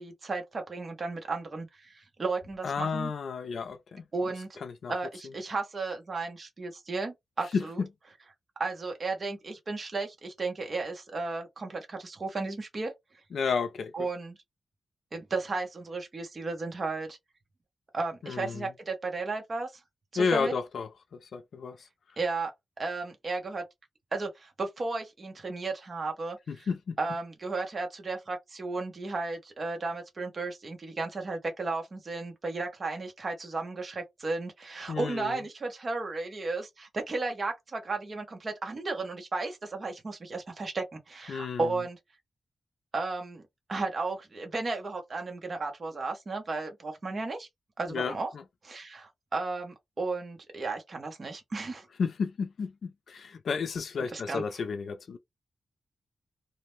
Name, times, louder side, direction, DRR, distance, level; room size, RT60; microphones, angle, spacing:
voice 1, 0.0-3.1 4.1-4.6 4.9-7.8 8.6-12.9 13.9-14.4 15.1-17.2 17.9-19.7 20.1-20.5 22.2-22.5 22.8-23.6 24.1-26.7 27.0-42.0 42.9-43.4 43.7-47.5 47.8-48.3 48.6-51.9 54.1-54.4, right 3 dB, 40° right, 0.9 m, -34 dB
voice 2, 2.6-4.0 4.6-4.9 7.5-7.9 13.3-14.1 18.2-18.7 20.2-20.9 21.2-21.8 26.5-27.0 34.9-35.4 41.3-41.7 47.9-48.4 52.0-55.2, left 5 dB, 75° left, 0.4 m, -32 dB
2.5 x 2.1 x 3.0 m
wide cardioid pair, 135°, 0 cm